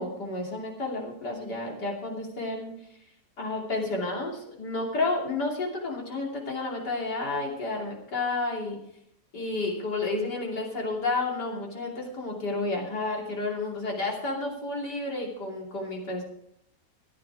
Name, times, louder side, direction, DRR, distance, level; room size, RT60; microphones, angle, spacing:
voice 1, 0.0-2.7 3.4-8.8 9.3-16.2, left 2 dB, 90° left, -1 dB, 3.5 m, -31 dB
14.5 x 10.0 x 4.7 m, 0.75 s
omnidirectional pair, 1.7 m